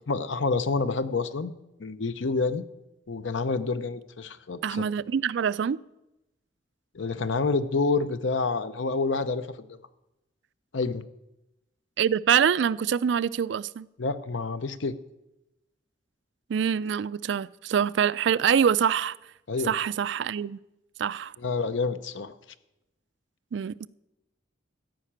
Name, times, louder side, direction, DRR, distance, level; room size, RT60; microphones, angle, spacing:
voice 1, 0.0-1.5 1.8-2.6 3.1-4.8 6.9-9.8 10.7-11.1 14.0-15.0 19.5-19.7 21.4-22.3, left 4 dB, 85° left, 0.7 m, -28 dB
voice 2, 4.6-5.8 12.0-13.9 16.5-19.1 19.6-20.6 21.0-21.3 23.5-23.9, right 8 dB, 70° right, 0.3 m, -25 dB
14.0 x 5.8 x 8.8 m
head